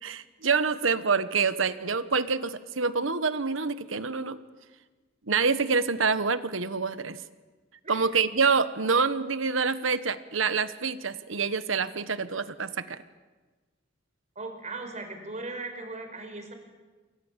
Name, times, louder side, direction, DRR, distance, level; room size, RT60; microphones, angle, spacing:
voice 1, 0.0-4.4 5.3-7.2 7.9-13.0, right 5 dB, 75° right, 13 dB, 1.3 m, -26 dB
voice 2, 14.3-16.5, right 3 dB, 40° right, 6 dB, 4.7 m, -38 dB
29.0 x 23.5 x 7.5 m, 1.3 s
head